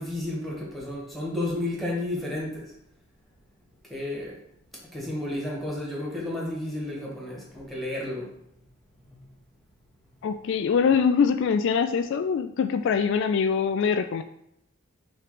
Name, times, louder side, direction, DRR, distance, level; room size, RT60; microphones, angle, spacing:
voice 1, 0.0-2.7 3.9-4.4 4.9-8.3 9.1-9.2, left 1 dB, ahead, -4 dB, 1.8 m, -32 dB
voice 2, 10.2-14.2, left 6 dB, 60° left, 9 dB, 0.3 m, -23 dB
5.8 x 3.2 x 5.0 m, 0.76 s
head